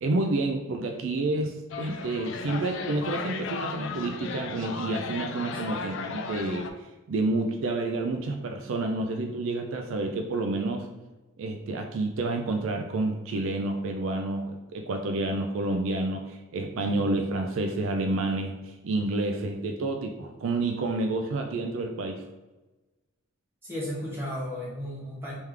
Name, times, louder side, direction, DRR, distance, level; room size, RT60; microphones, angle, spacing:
voice 1, 0.0-6.6 7.1-10.9 11.4-22.2, right 2 dB, 65° right, 4 dB, 0.4 m, -29 dB
sound 1, 1.7-6.7, left 4 dB, 60° left, 0.4 m, -35 dB
voice 2, 23.6-25.3, equal, 10° right, -6 dB, 1.1 m, -34 dB
3.3 x 3.0 x 3.6 m, 1.1 s
head